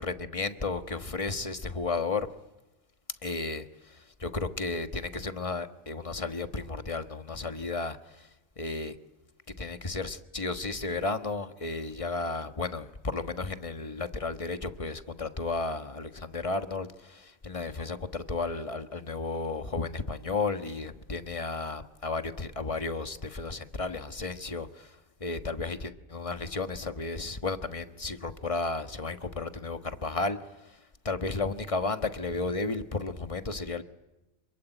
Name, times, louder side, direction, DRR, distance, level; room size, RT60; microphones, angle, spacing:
voice 1, 0.0-2.3 3.2-9.0 9.6-33.8, left 3 dB, 25° left, 9 dB, 1.3 m, -33 dB
27.0 x 23.0 x 9.1 m, 1.0 s
omnidirectional pair, 1.3 m